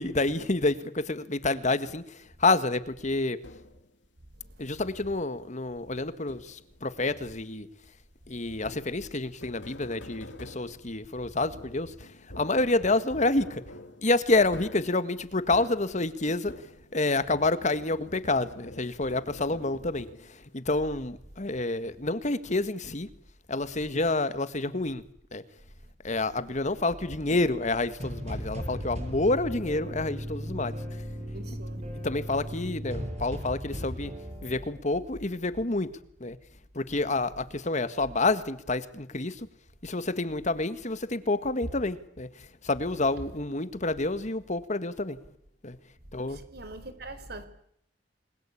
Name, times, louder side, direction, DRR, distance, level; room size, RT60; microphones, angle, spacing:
voice 1, 0.0-3.4 4.6-7.7 8.3-12.1 12.4-13.6 14.0-16.5 16.9-23.1 23.5-25.0 25.3-25.4 26.0-30.8 32.0-34.1 34.4-35.9 36.2-36.4 36.7-39.5 39.8-45.2 45.6-45.8 46.1-46.4, left 2 dB, 40° left, 1.7 m, -28 dB
sound 1, 3.4-3.9 4.9-5.4 6.3-6.8 8.6-17.1 17.4-20.5, left 1 dB, 85° left, 2.8 m, -47 dB
sound 2, 26.8-34.7, equal, 40° right, 7.9 m, -37 dB
voice 2, 31.2-32.1 46.3-47.5, right 2 dB, 60° right, 4.7 m, -44 dB
29.5 x 22.0 x 8.6 m
head